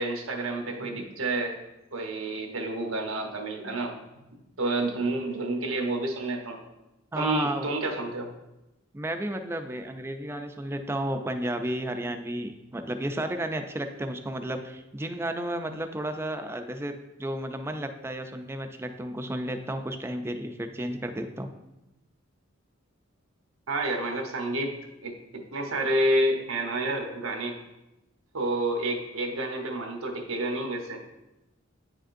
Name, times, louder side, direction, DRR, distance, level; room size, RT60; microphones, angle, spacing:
voice 1, 0.0-1.5 1.9-3.9 4.6-6.6 7.2-8.3 23.7-24.7 25.0-27.5 28.3-31.0, right 1 dB, 90° right, 2 dB, 1.0 m, -29 dB
voice 2, 7.1-7.7 8.9-16.9 17.2-21.5, right 1 dB, 10° right, 6 dB, 0.4 m, -32 dB
9.2 x 5.0 x 2.6 m, 0.97 s
head